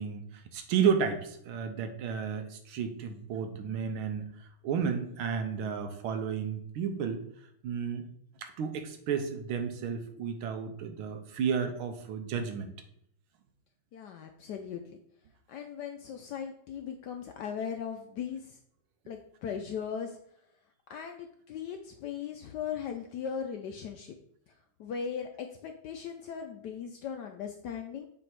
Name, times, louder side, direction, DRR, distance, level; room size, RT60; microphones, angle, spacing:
voice 1, 0.0-4.3 4.6-7.2 7.6-8.0 8.4-12.7, right 7 dB, 90° right, 7 dB, 1.6 m, -32 dB
voice 2, 13.9-14.8 15.5-18.6 19.1-20.2 20.9-24.1 24.8-28.1, left 7 dB, 75° left, 5 dB, 0.9 m, -38 dB
7.1 x 3.4 x 4.5 m, 0.69 s
omnidirectional pair, 2.3 m